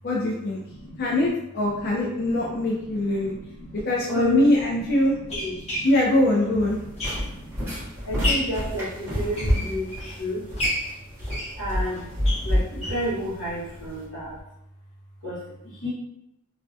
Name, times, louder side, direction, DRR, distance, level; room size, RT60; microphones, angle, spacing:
voice 1, 0.0-0.6 1.0-3.4 3.9-5.2 5.8-6.8, left 1 dB, 45° left, -4 dB, 0.4 m, -22 dB
voice 2, 0.7-1.3 1.6-5.9 6.6-7.5 8.0-10.4 11.6-12.1 12.4-14.4 15.2-15.9, equal, 75° left, -11 dB, 0.9 m, -32 dB
sound 1, 3.7-3.8 4.6-7.6 8.0-8.6 9.2-10.1 10.6-13.1 13.5-13.6 13.9-14.0 14.3-14.4, left 1 dB, 30° left, 0.8 m, -31 dB
sound 2, 6.6-14.0, equal, 10° right, 1.0 m, -29 dB
2.3 x 2.1 x 2.5 m, 0.82 s
head